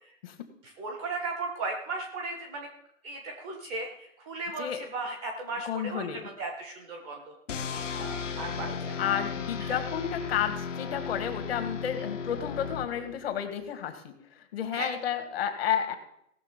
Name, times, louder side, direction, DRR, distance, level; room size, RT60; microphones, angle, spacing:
voice 1, 0.8-2.7 3.0-7.2 7.7-9.0 9.6-9.8 14.7-14.9, right 3 dB, 5° left, 3 dB, 0.3 m, -36 dB
voice 2, 5.6-6.3 9.0-16.0, left 9 dB, 45° left, 7 dB, 2.1 m, -31 dB
sound 1, 7.5-13.4, left 6 dB, 65° left, 1.4 m, -35 dB
17.5 x 6.6 x 5.2 m, 0.75 s
hypercardioid pair, 140°, 40 cm